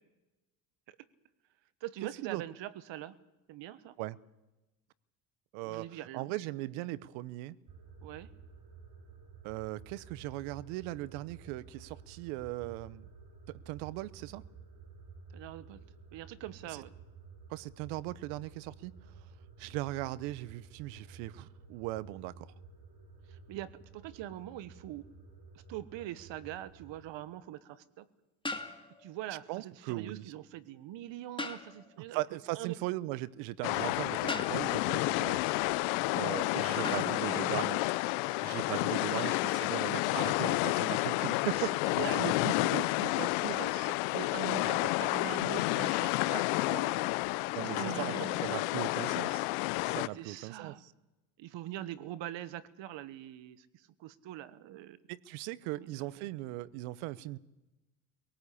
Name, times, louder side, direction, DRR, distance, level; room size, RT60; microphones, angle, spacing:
voice 1, 1.8-3.2 3.5-3.9 5.6-6.4 8.0-8.3 15.3-15.8 16.1-16.9 23.3-25.0 25.5-28.1 29.0-32.8 35.2-35.4 36.7-37.5 38.8-39.2 41.6-47.1 47.6-48.7 50.1-50.8 51.4-55.0 55.8-55.9 56.2-56.3, right 13 dB, 65° right, 1.3 m, -43 dB
voice 2, 5.5-5.9 6.1-7.6 9.4-13.1 13.5-14.4 16.7-16.8 17.5-18.9 19.6-22.5 29.5-30.3 32.1-35.3 36.2-37.8 38.4-41.7 47.5-48.1 48.4-49.5 49.8-50.9 55.1-57.4, right 17 dB, 80° right, 1.0 m, -38 dB
sound 1, 7.7-27.0, right 4 dB, 50° right, 5.3 m, -53 dB
sound 2, 26.0-26.2 28.4-29.2 31.4-32.0 34.3-34.9 36.8-37.2, left 2 dB, 10° left, 2.4 m, -40 dB
sound 3, 33.6-50.1, left 22 dB, 80° left, 0.7 m, -30 dB
22.5 x 18.0 x 8.5 m
supercardioid pair, 80°, 48 cm